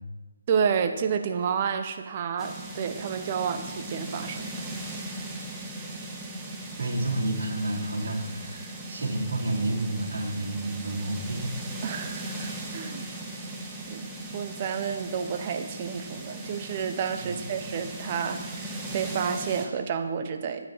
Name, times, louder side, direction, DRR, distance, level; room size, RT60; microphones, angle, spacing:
voice 1, 0.5-4.6 11.8-13.1 13.9-20.7, right 7 dB, 30° right, 7 dB, 0.8 m, -30 dB
sound 1, 2.4-19.7, right 1 dB, 10° right, 1.2 m, -38 dB
voice 2, 6.8-11.5 17.2-17.5, right 2 dB, 60° right, -5 dB, 3.3 m, -30 dB
9.1 x 8.9 x 4.0 m, 1.3 s
figure-of-eight pair, 155°, 0 cm